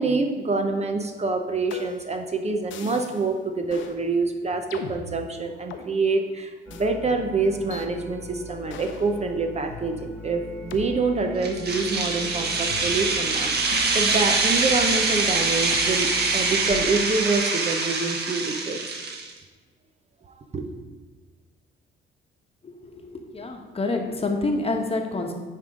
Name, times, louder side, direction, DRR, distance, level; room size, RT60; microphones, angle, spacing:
voice 1, 0.0-19.0 20.3-20.7, right 3 dB, 35° right, 5 dB, 0.7 m, -26 dB
sound 1, 1.7-2.2 2.7-3.3 3.7-4.0 4.7-5.9 6.7-6.9 7.7-7.9 8.7-9.1 9.7-9.8 10.7-10.8 11.7-12.0 12.7-13.3 13.7-15.0 15.7-15.9 16.7-17.1, left 6 dB, 75° left, 0.7 m, -40 dB
sound 2, 6.7-16.6, left 1 dB, 5° left, 1.1 m, -41 dB
sound 3, 11.4-19.3, right 3 dB, 55° right, 1.3 m, -24 dB
voice 2, 22.6-25.3, left 2 dB, 30° left, 3 dB, 1.1 m, -28 dB
9.6 x 3.7 x 5.1 m, 1.4 s
cardioid pair, 90°, 20 cm